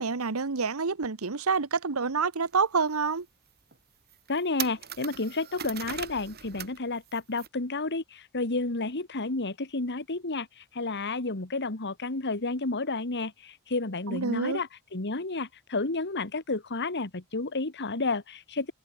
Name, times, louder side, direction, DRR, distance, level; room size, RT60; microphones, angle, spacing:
voice 1, 0.0-3.3 14.1-14.6, right 4 dB, 75° right, 1.1 m, -28 dB
sound 1, 2.5-2.6 3.1-3.2 3.7-3.8 4.1-6.8 7.0-7.5, right 9 dB, 45° right, 7.0 m, -39 dB
voice 2, 4.3-18.7, left 3 dB, 55° left, 1.9 m, -31 dB
head